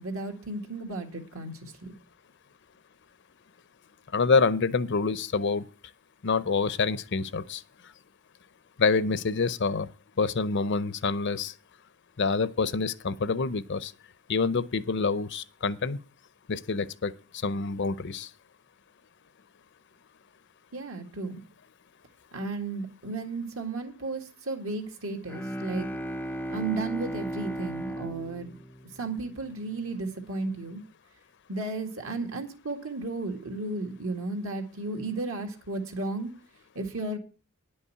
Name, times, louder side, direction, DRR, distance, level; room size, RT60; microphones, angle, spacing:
voice 1, 0.0-1.9 20.7-21.4 22.3-25.9 26.5-28.5 29.0-30.8 31.5-36.3 36.8-37.2, right 3 dB, 65° right, 2.0 m, -34 dB
voice 2, 4.1-5.6 6.2-7.6 8.8-9.9 10.2-11.5 12.2-13.9 14.3-16.0 16.5-17.1 17.4-18.3, left 4 dB, 55° left, 0.6 m, -26 dB
Bowed string instrument, 25.2-29.5, right 1 dB, 10° left, 0.4 m, -36 dB
10.0 x 5.5 x 8.4 m
head